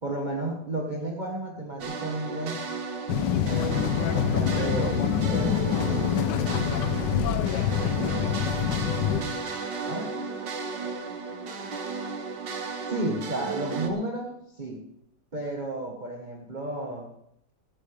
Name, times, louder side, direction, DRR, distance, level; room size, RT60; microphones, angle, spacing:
voice 1, 0.0-2.6 3.5-3.8 4.1-5.8 7.8-8.4 9.9-10.1 12.9-14.8 15.3-17.1, right 2 dB, 25° right, -1 dB, 1.6 m, -32 dB
sound 1, 1.8-13.9, right 4 dB, 75° right, 2.1 m, -34 dB
sound 2, 3.1-9.2, left 9 dB, 75° left, 1.5 m, -26 dB
voice 2, 7.3-8.5 9.5-11.9, left 2 dB, 30° left, -4 dB, 5.7 m, -49 dB
15.5 x 14.5 x 3.5 m, 0.73 s
omnidirectional pair, 2.0 m